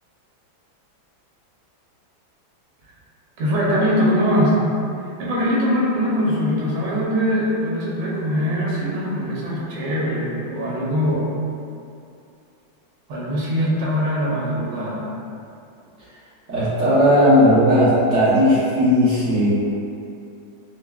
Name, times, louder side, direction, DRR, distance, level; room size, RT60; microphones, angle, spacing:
voice 1, 3.4-4.6 5.2-11.4 13.1-15.1, equal, 90° right, -5 dB, 1.6 m, -22 dB
voice 2, 16.5-19.5, equal, 50° right, -9 dB, 0.9 m, -16 dB
5.8 x 2.0 x 2.3 m, 2.6 s
omnidirectional pair, 2.1 m